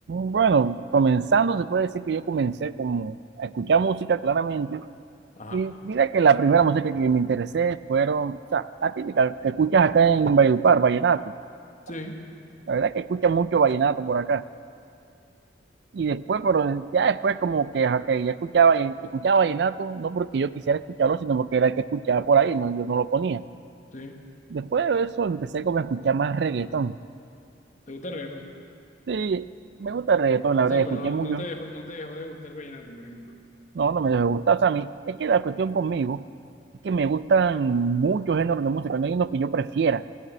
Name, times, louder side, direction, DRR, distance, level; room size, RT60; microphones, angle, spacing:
voice 1, 0.1-4.9 5.5-11.3 12.7-14.4 15.9-23.4 24.5-27.0 29.1-29.5 29.8-31.4 33.7-36.2 36.8-40.0, right 5 dB, 60° right, 16 dB, 0.4 m, -23 dB
voice 2, 11.9-12.2 23.9-24.2 27.9-28.5 30.6-33.4, left 1 dB, 40° left, 3 dB, 1.1 m, -37 dB
13.0 x 9.4 x 9.1 m, 2.4 s
head